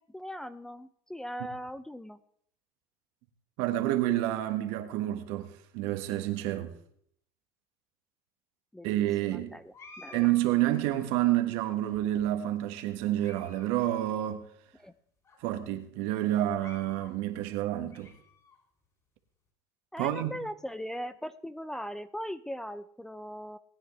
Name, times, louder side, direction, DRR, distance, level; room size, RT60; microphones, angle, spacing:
voice 1, 0.0-2.2 8.7-10.3 14.8-14.9 19.9-23.6, equal, 5° left, 0.5 m, -40 dB
voice 2, 3.6-6.7 8.8-9.5 10.1-14.4 15.4-18.1 20.0-20.4, right 14 dB, 75° right, 1.5 m, -29 dB
sound 1, 9.7-11.2 11.8-12.5 13.0-13.7 14.0-14.1 14.8-14.9 15.2-15.4 16.4-17.2 17.6-18.6, left 3 dB, 35° left, 6.4 m, -53 dB
19.0 x 9.9 x 3.3 m
supercardioid pair, 115°, 10 cm